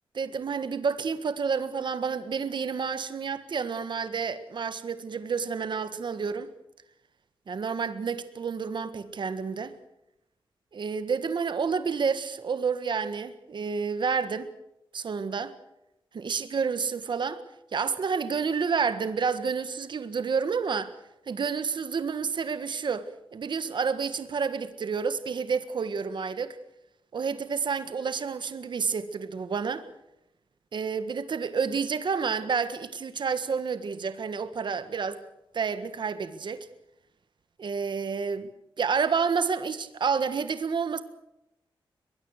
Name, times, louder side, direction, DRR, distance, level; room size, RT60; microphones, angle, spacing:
voice 1, 0.1-6.5 7.5-9.7 10.7-14.5 14.9-15.5 16.1-17.4 17.7-20.9 21.3-26.6 27.1-29.8 30.7-35.2 35.5-36.7 37.6-38.5 38.8-41.0, right 5 dB, 60° right, 1.6 m, -29 dB
23.0 x 20.5 x 6.6 m
wide cardioid pair, 135°, 9 cm